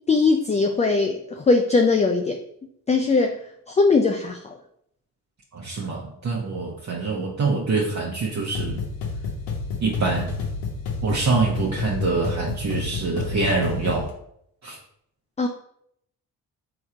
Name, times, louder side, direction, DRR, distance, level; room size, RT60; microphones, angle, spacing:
voice 1, 0.1-2.4 2.9-4.5 15.4-15.5, left 3 dB, 15° left, 3 dB, 0.4 m, -20 dB
voice 2, 5.5-8.8 9.8-10.3 11.0-14.1 14.6-14.8, right 3 dB, 35° right, -3 dB, 0.9 m, -25 dB
sound 1, 8.5-14.1, left 4 dB, 75° left, 1.2 m, -30 dB
3.5 x 3.0 x 4.3 m, 0.72 s
hypercardioid pair, 45°, 47 cm